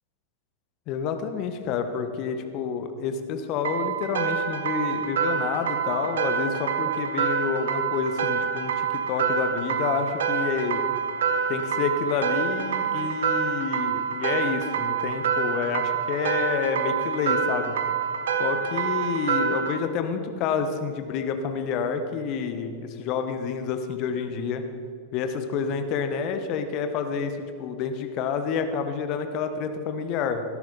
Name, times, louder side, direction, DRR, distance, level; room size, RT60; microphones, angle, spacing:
voice 1, 0.9-10.8 11.5-17.8 18.4-24.6 25.1-30.4, left 6 dB, 40° left, 8 dB, 1.2 m, -29 dB
sound 1, 3.6-19.8, right 6 dB, 60° right, 1.0 m, -27 dB
18.5 x 12.0 x 4.1 m, 2.3 s
figure-of-eight pair, 90°, 0 cm